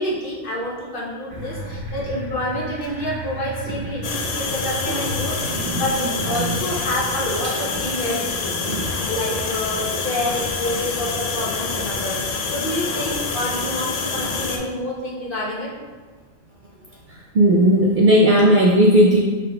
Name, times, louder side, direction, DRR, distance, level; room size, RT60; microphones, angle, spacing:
voice 1, 0.0-15.7, left 1 dB, 50° left, -4 dB, 1.0 m, -28 dB
sound 1, 1.3-7.6, right 2 dB, 80° right, 1.3 m, -32 dB
sound 2, 4.0-14.6, left 4 dB, 80° left, 0.3 m, -27 dB
voice 2, 8.6-9.1 17.3-19.2, equal, 60° right, -3 dB, 0.5 m, -15 dB
5.4 x 3.7 x 2.3 m, 1.4 s
omnidirectional pair, 1.2 m